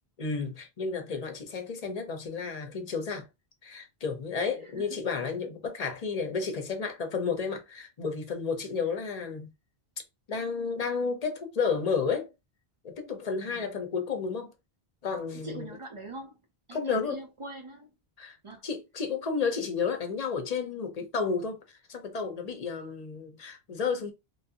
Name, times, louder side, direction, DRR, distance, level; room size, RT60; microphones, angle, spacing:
voice 1, 0.2-3.3 3.6-9.5 10.3-12.3 12.8-14.5 15.0-15.7 16.7-17.2 18.2-18.4 18.6-21.6 21.9-24.1, left 5 dB, 45° left, 0.7 m, -32 dB
voice 2, 4.6-5.0 13.4-13.7 15.4-16.4 16.7-17.9 18.4-18.7, right 2 dB, 40° right, 0.5 m, -43 dB
3.2 x 2.6 x 2.7 m
omnidirectional pair, 1.0 m